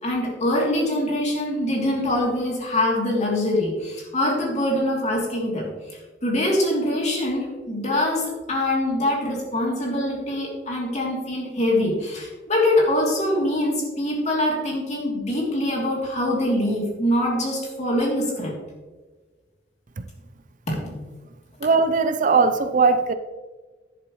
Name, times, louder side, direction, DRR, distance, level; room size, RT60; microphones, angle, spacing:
voice 1, 0.0-18.6 20.7-21.0, left 1 dB, 40° left, -2 dB, 3.0 m, -24 dB
voice 2, 21.6-23.1, right 4 dB, 45° right, 9 dB, 0.6 m, -19 dB
11.0 x 10.5 x 3.1 m, 1.3 s
head